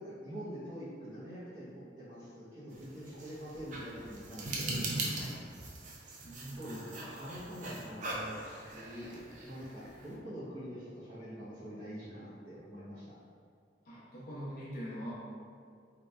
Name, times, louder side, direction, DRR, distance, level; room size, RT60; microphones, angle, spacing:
voice 1, 0.0-4.8 6.5-9.1 9.4-13.1, equal, 25° right, -15 dB, 0.8 m, -45 dB
sound 1, 2.7-10.2, right 2 dB, 45° right, 0.4 m, -41 dB
voice 2, 6.2-6.8 13.8-15.1, equal, 55° left, -9 dB, 0.8 m, -43 dB
2.8 x 2.3 x 3.2 m, 2.2 s
head